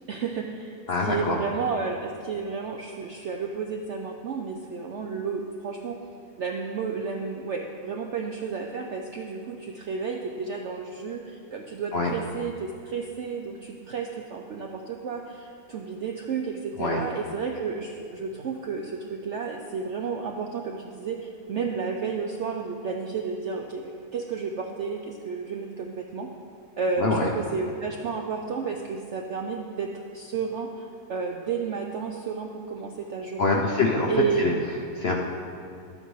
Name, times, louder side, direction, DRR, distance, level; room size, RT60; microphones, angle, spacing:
voice 1, 0.1-6.0 6.4-26.3 26.8-33.6 34.1-34.5, right 5 dB, 70° right, 2 dB, 0.6 m, -32 dB
voice 2, 0.9-1.4 11.9-12.1 16.8-17.0 27.0-27.3 33.4-34.1 34.4-34.5 35.0-35.2, left 3 dB, 60° left, -1 dB, 0.6 m, -24 dB
12.5 x 8.9 x 3.1 m, 2.5 s
omnidirectional pair, 1.8 m